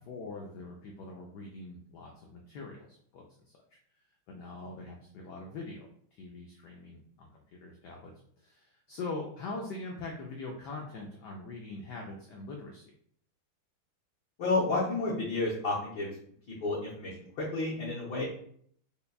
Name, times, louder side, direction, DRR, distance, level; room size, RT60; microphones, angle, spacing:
voice 1, 0.1-3.2 4.3-8.1 8.4-12.9, left 3 dB, 85° left, 0 dB, 0.9 m, -42 dB
voice 2, 14.4-16.2 16.6-18.2, left 3 dB, 60° left, -7 dB, 1.2 m, -31 dB
5.3 x 2.2 x 2.3 m, 0.64 s
omnidirectional pair, 2.3 m